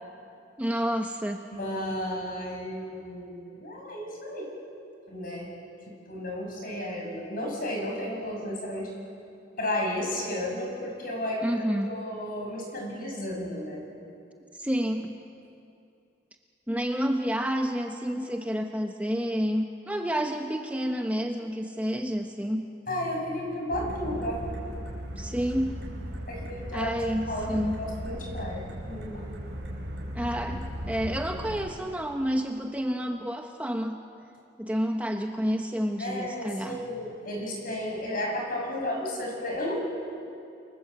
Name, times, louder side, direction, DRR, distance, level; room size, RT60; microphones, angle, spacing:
voice 1, 0.6-1.4 11.4-11.9 14.6-15.1 16.7-22.6 25.2-25.7 26.7-27.8 30.1-34.0 34.6-36.8, equal, 10° right, 3 dB, 1.0 m, -29 dB
voice 2, 1.5-4.5 5.1-5.5 6.1-8.9 9.6-13.8 22.9-24.4 26.3-26.9 27.3-29.3 36.0-39.7, left 1 dB, 50° left, 0 dB, 6.6 m, -33 dB
sound 1, 23.7-31.7, equal, 75° right, 5.1 m, -37 dB
28.5 x 24.0 x 7.8 m, 2.6 s
head